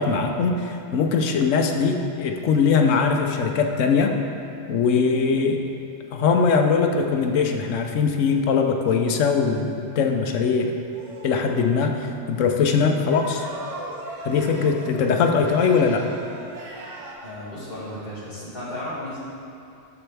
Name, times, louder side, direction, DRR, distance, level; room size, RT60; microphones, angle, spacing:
voice 1, 0.0-4.2 4.7-5.6 6.1-10.7 11.2-13.5 14.2-16.1, left 5 dB, 80° left, 4 dB, 1.0 m, -21 dB
sound 1, 10.9-11.7 12.9-17.1, right 2 dB, 75° right, 1.4 m, -38 dB
voice 2, 17.2-19.2, left 1 dB, 35° left, -9 dB, 2.2 m, -34 dB
13.0 x 4.3 x 3.3 m, 2.7 s
omnidirectional pair, 1.3 m